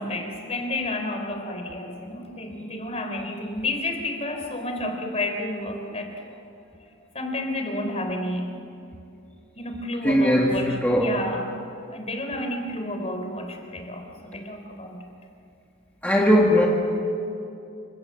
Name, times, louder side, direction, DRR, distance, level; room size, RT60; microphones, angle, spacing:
voice 1, 0.0-6.1 7.1-8.5 9.6-11.5 11.9-15.0, left 1 dB, 30° left, 4 dB, 3.8 m, -30 dB
voice 2, 10.0-11.2 16.0-16.7, equal, 10° left, -2 dB, 2.0 m, -19 dB
28.0 x 26.0 x 7.8 m, 2.6 s
head